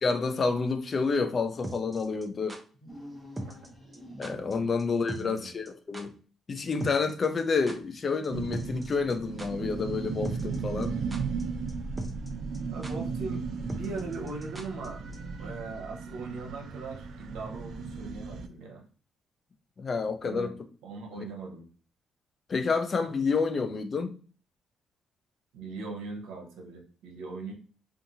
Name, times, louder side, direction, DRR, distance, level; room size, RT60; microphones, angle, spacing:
voice 1, 0.0-2.6 4.2-6.1 6.5-10.9 19.8-20.5 21.1-21.2 22.5-24.1, left 4 dB, 40° left, 0.5 m, -29 dB
sound 1, 1.6-2.6 3.4-3.7 3.9-4.0 4.2-4.5 4.8-4.9 5.1-5.4 5.6-5.7 5.9-6.0 6.8-8.0 8.2-8.3 8.5-9.1 9.4-9.5 10.2-10.6 10.8-11.4 11.7-11.8 12.0-12.3 12.5-12.6 12.8-12.9 13.7-14.9 15.1-15.2, right 1 dB, 15° right, 0.6 m, -39 dB
sound 2, 2.7-4.8, equal, 10° left, 1.3 m, -46 dB
voice 2, 5.1-5.5 12.7-15.0 15.4-18.8 20.2-20.5 20.8-21.7 25.5-27.5, right 3 dB, 90° right, 0.8 m, -40 dB
sound 3, 8.3-18.5, right 5 dB, 65° right, 0.4 m, -36 dB
2.7 x 2.5 x 2.7 m
cardioid pair, 90°, 0 cm